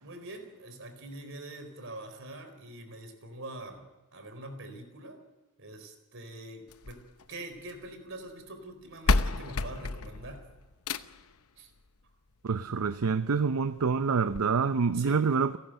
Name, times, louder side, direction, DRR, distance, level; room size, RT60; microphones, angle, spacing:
voice 1, 0.0-5.2 5.6-10.4 11.6-11.7 14.9-15.2, right 1 dB, 60° right, 4.3 m, -44 dB
sound 1, 6.7-7.9 8.7-8.8 9.1-11.3 12.7-12.8 13.3-13.4 13.6-13.7 14.3-14.4, left 3 dB, 75° left, 0.9 m, -30 dB
voice 2, 12.4-15.6, right 5 dB, 75° right, 0.6 m, -27 dB
29.5 x 12.0 x 7.7 m
head